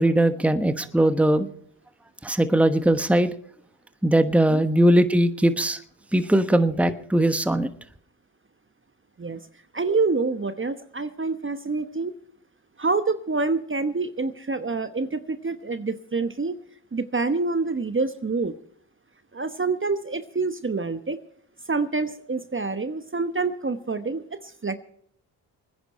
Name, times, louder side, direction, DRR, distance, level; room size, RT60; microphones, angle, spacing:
voice 1, 0.0-1.5 2.2-3.3 4.0-5.8 6.1-7.7, right 1 dB, 5° right, 1.2 m, -20 dB
voice 2, 9.7-12.1 12.8-16.6 16.9-18.5 19.3-21.2 21.7-24.8, right 3 dB, 25° right, 1.1 m, -27 dB
23.5 x 10.0 x 4.3 m
supercardioid pair, 50°, 46 cm